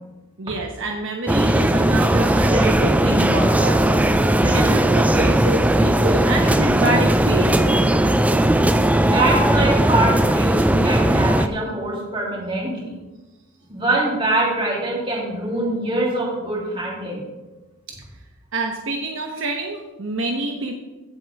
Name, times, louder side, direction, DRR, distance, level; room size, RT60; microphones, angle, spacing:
voice 1, 0.4-7.9 17.9-18.0 18.5-20.7, right 2 dB, 60° right, 2 dB, 1.0 m, -27 dB
sound 1, 1.3-11.5, right 1 dB, 5° right, 0.3 m, -17 dB
voice 2, 9.0-12.9 13.7-17.2, right 2 dB, 25° right, -4 dB, 3.1 m, -24 dB
15.5 x 7.6 x 3.5 m, 1.1 s
head